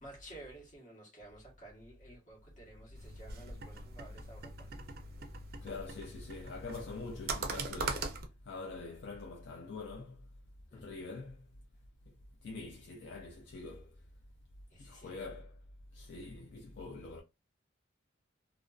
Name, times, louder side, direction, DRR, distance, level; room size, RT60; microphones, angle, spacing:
voice 1, 0.0-4.8 10.7-11.0 14.7-15.1, right 1 dB, 40° left, 1.1 m, -53 dB
sound 1, 2.9-8.3, right 3 dB, 50° right, 0.4 m, -41 dB
voice 2, 5.6-8.1 8.5-10.2 10.7-11.4 12.4-13.9 14.8-15.6 15.9-17.2, left 3 dB, 65° left, 0.4 m, -44 dB
2.4 x 2.2 x 2.3 m
head